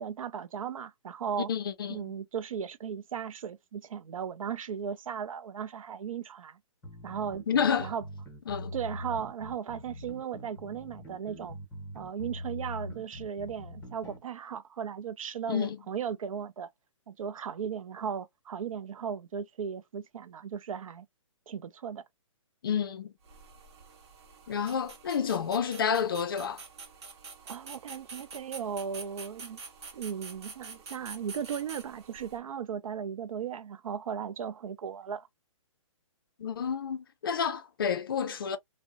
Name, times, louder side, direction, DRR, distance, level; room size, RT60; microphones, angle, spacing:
voice 1, 0.0-1.5 1.9-6.6 7.0-7.5 7.8-8.0 8.7-11.6 11.9-16.7 17.1-21.1 21.5-22.0 27.5-29.6 29.9-35.3, right 7 dB, 80° right, 0.4 m, -36 dB
voice 2, 1.5-2.1 7.5-7.9 8.5-8.7 15.5-15.8 22.6-23.1 24.5-26.6 36.4-38.6, left 7 dB, 40° left, 0.4 m, -30 dB
sound 1, 6.8-14.2, left 1 dB, 10° left, 0.7 m, -42 dB
sound 2, 23.2-32.4, right 4 dB, 55° right, 0.8 m, -47 dB
2.6 x 2.0 x 2.4 m
hypercardioid pair, 170°, 17 cm